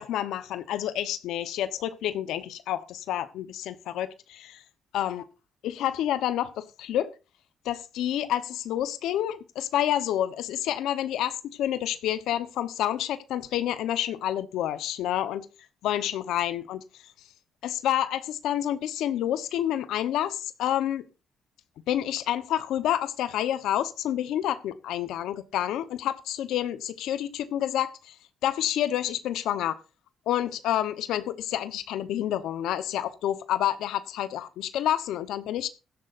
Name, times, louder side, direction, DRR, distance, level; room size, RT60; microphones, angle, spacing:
voice 1, 0.0-4.6 4.9-5.2 5.6-7.1 7.6-15.5 15.8-16.8 17.6-21.0 21.9-28.2 28.4-29.8 30.3-35.7, left 11 dB, 85° left, 1.0 m, -29 dB
16.0 x 12.0 x 2.6 m
cardioid pair, 90°, 0 cm